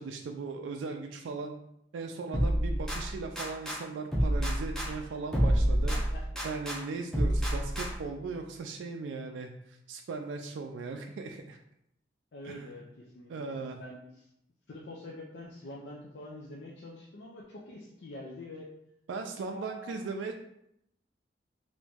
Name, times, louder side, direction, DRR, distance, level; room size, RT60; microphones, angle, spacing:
voice 1, 0.0-1.6 1.9-6.0 6.4-11.6 12.4-12.7 13.3-13.8 19.1-20.4, right 4 dB, 85° right, 3 dB, 0.3 m, -38 dB
sound 1, 2.3-3.8 4.1-6.8 7.1-8.2, equal, 5° left, 0.6 m, -29 dB
voice 2, 4.8-5.2 12.3-14.3 14.7-18.7 19.3-20.1, left 2 dB, 65° left, -3 dB, 0.5 m, -46 dB
2.9 x 2.6 x 3.5 m, 0.77 s
head